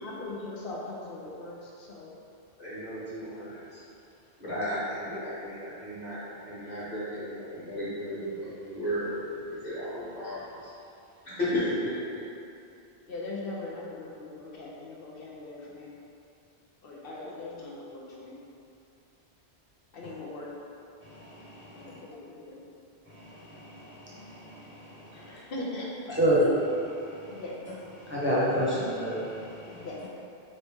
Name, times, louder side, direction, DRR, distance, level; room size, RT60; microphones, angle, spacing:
voice 1, 0.0-2.1 13.1-15.9 16.8-18.3 19.9-20.5 21.7-22.6 25.1-26.2 27.3-27.6 29.7-30.1, left 2 dB, 65° left, -4 dB, 0.9 m, -40 dB
voice 2, 2.6-3.8 4.4-10.7 11.2-11.9 17.2-17.4, equal, 40° left, -11 dB, 1.6 m, -34 dB
voice 3, 26.2-26.5 28.1-29.9, equal, 10° right, -9 dB, 0.8 m, -26 dB
4.0 x 3.1 x 3.5 m, 2.7 s
omnidirectional pair, 1.1 m